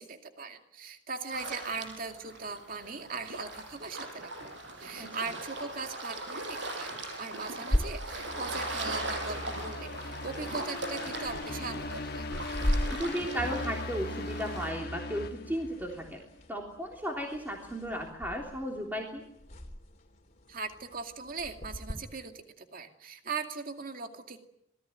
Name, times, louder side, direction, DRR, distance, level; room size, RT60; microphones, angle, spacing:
voice 1, 0.0-12.3 20.5-24.4, right 4 dB, 45° right, 5 dB, 2.4 m, -40 dB
sound 1, 1.3-14.7, right 2 dB, 65° right, 5.6 m, -40 dB
sound 2, 7.7-21.9, equal, 35° left, 3.0 m, -38 dB
sound 3, 7.9-16.2, left 2 dB, 55° left, 1.3 m, -40 dB
voice 2, 12.9-16.2 16.5-19.2, equal, 10° right, 0 dB, 3.3 m, -35 dB
26.5 x 18.5 x 9.2 m, 0.77 s
head